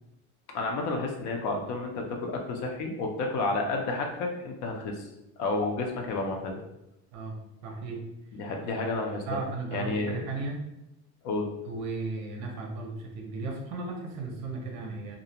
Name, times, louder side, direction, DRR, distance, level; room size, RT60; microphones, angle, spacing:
voice 1, 0.5-5.0 5.4-6.6 8.4-9.2 9.7-10.2 11.2-11.5, left 3 dB, 50° left, 2 dB, 0.5 m, -31 dB
voice 2, 7.1-8.0 9.3-10.6 11.7-15.2, right 3 dB, 50° right, 1 dB, 0.6 m, -35 dB
2.5 x 2.1 x 2.7 m, 0.87 s
cardioid pair, 165°, 38 cm